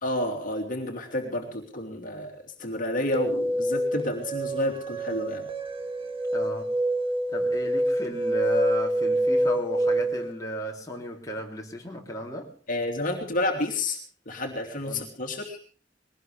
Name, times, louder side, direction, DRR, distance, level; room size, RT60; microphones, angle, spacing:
voice 1, 0.0-5.5 12.7-14.0 14.2-15.6, left 1 dB, 45° left, 2 dB, 3.0 m, -30 dB
sound 1, 3.1-10.3, right 1 dB, 30° right, 2.2 m, -26 dB
voice 2, 6.3-6.7 7.3-12.5 14.9-15.1, equal, 20° left, -1 dB, 3.5 m, -34 dB
21.5 x 18.5 x 3.5 m, 0.40 s
head